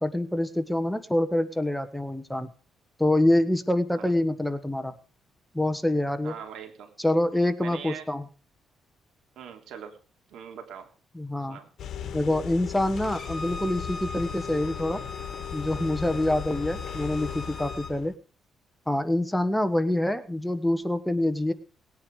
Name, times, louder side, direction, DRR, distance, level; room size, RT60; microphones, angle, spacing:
voice 1, 0.0-2.5 3.0-4.9 5.5-6.3 7.0-8.2 11.1-11.6 12.1-15.0 15.5-18.1 18.9-21.5, left 1 dB, 5° left, 11 dB, 1.4 m, -26 dB
voice 2, 6.2-6.9 7.6-8.1 9.3-10.0 10.3-10.9 11.5-11.7, right 8 dB, 75° right, 5 dB, 3.3 m, -41 dB
sound 1, 11.8-18.1, left 8 dB, 65° left, 1.8 m, -37 dB
Bowed string instrument, 13.0-17.9, left 2 dB, 30° left, 2.3 m, -40 dB
19.5 x 9.7 x 5.0 m, 0.38 s
cardioid pair, 90°, 0 cm